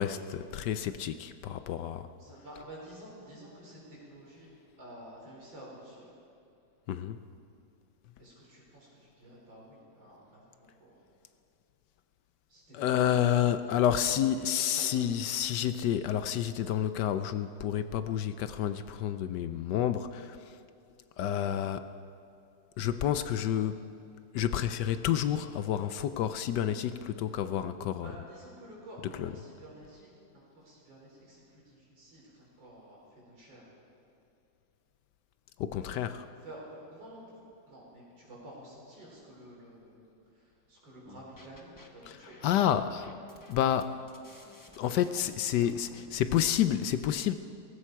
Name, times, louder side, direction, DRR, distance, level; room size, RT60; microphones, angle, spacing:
voice 1, 0.0-2.1 6.9-7.2 12.7-20.5 21.2-21.9 22.8-23.9 24.3-28.1 29.2-29.3 35.6-36.2 42.4-43.1 43.5-43.9 44.8-47.3, left 10 dB, 75° left, 11 dB, 1.1 m, -29 dB
voice 2, 2.2-4.5 4.8-6.1 8.2-11.0 12.5-13.3 13.9-15.9 28.0-33.7 35.8-40.0 40.3-42.4 45.3-45.6, right 1 dB, 75° right, -4 dB, 5.0 m, -50 dB
sound 1, 41.0-41.9 42.2-46.6, left 1 dB, 15° left, 0.6 m, -55 dB
18.0 x 16.0 x 4.6 m, 2.7 s
omnidirectional pair, 2.0 m